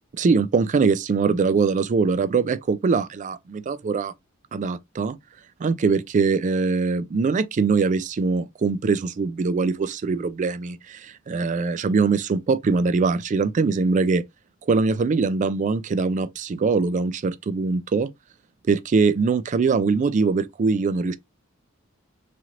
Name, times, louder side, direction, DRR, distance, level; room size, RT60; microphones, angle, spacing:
voice 1, 0.2-4.1 4.5-5.2 5.6-14.2 14.6-18.1 18.7-21.1, right 4 dB, 35° right, 0.3 m, -22 dB
3.1 x 2.5 x 2.8 m
head